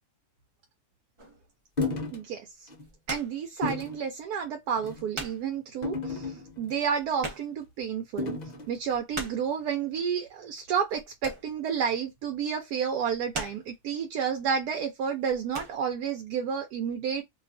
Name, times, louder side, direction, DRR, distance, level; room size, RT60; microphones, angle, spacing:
sound 1, 1.2-1.5 2.6-3.4 3.8-3.9 4.5-4.6 4.8-5.6 5.9-6.0 6.2-6.3 6.5-7.8 8.2-8.3 8.6-9.6 10.9-11.7 12.0-12.3 12.9-13.9 14.5-14.7 15.1-15.8, right 2 dB, 25° right, 0.7 m, -40 dB
sound 2, 1.8-2.2 2.7-2.8 3.6-4.0 4.8-5.1 5.8-6.7 8.2-8.7, left 3 dB, 50° left, 0.5 m, -32 dB
voice 1, 3.1-8.3 8.7-17.2, right 7 dB, 90° right, 1.1 m, -30 dB
2.7 x 2.3 x 2.4 m
omnidirectional pair, 1.6 m